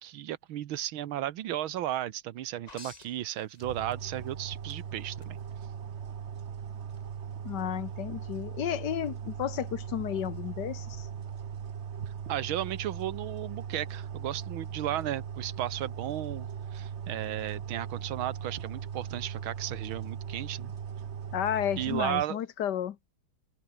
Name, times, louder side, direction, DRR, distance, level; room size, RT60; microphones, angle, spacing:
voice 1, 0.0-5.4 12.1-20.7 21.8-22.4, right 12 dB, 75° right, 1.8 m, -34 dB
sound 1, 2.7-4.3 4.7-5.3 6.9-7.0, left 4 dB, 25° left, 1.1 m, -50 dB
sound 2, 3.6-22.3, right 8 dB, 45° right, 0.9 m, -39 dB
voice 2, 7.4-11.1 21.3-23.0, left 10 dB, 60° left, 1.5 m, -32 dB
omnidirectional pair, 2.3 m